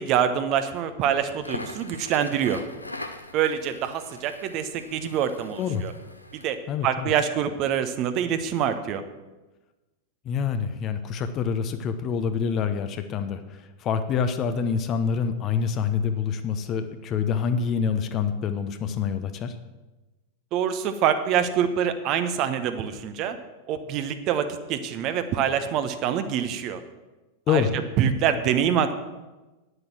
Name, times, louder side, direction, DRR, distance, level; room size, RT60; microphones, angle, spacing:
voice 1, 0.0-2.6 3.3-5.9 6.3-9.0 20.5-23.4 23.7-26.8 27.5-27.6 28.0-28.9, right 8 dB, 40° right, 9 dB, 1.0 m, -25 dB
Crackle, 1.3-6.6, left 1 dB, 85° left, 0.8 m, -41 dB
voice 2, 6.7-7.1 10.2-19.6 27.5-27.8, left 6 dB, 35° left, 9 dB, 1.0 m, -26 dB
9.8 x 8.0 x 7.5 m, 1.1 s
figure-of-eight pair, 90°, 0 cm